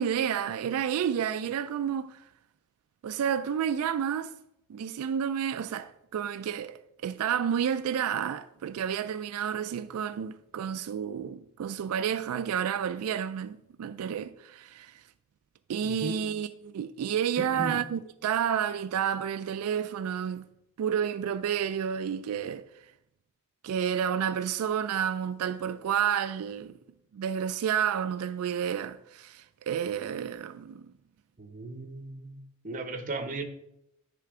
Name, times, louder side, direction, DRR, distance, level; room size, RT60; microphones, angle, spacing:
voice 1, 0.0-2.2 3.0-4.3 4.7-15.0 15.7-20.5 20.8-22.7 23.6-26.8 27.1-30.9, right 8 dB, 85° right, 0.3 m, -30 dB
voice 2, 15.8-16.2 17.4-17.8 31.4-33.4, right 3 dB, 35° right, 0.8 m, -36 dB
9.9 x 3.4 x 4.8 m
head